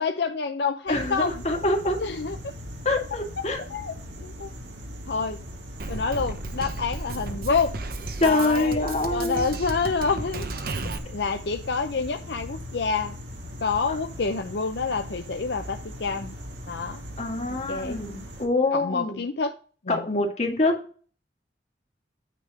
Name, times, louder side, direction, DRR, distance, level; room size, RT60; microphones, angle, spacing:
voice 1, 0.0-1.4 2.0-2.4 3.7-3.9 4.2-4.5 5.1-5.4 5.9-7.8 8.2-8.8 9.1-10.5 11.1-13.2 13.6-16.3 16.7-17.0 17.7-18.0 18.7-19.5 19.9-20.0, left 4 dB, 70° left, 6 dB, 0.6 m, -27 dB
voice 2, 0.9-2.0 2.8-3.6 8.2-9.5 17.2-19.2 19.9-20.8, left 2 dB, 40° left, 2 dB, 2.1 m, -25 dB
sound 1, 0.9-18.5, equal, 85° right, 2.7 m, -40 dB
Drum kit, 5.8-11.0, right 2 dB, 55° right, 1.0 m, -34 dB
9.2 x 3.6 x 6.4 m, 0.40 s
head